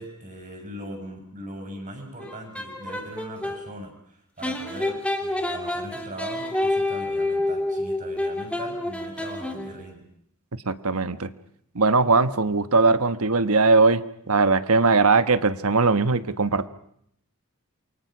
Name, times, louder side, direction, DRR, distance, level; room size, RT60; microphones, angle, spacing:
voice 1, 0.0-10.0, right 1 dB, 35° right, 4 dB, 6.9 m, -39 dB
sound 1, 2.2-3.6 4.4-9.9, left 2 dB, 5° left, 2.9 m, -28 dB
voice 2, 10.7-11.3 11.7-16.7, right 3 dB, 75° right, 12 dB, 1.2 m, -20 dB
28.0 x 24.0 x 6.1 m, 0.70 s
head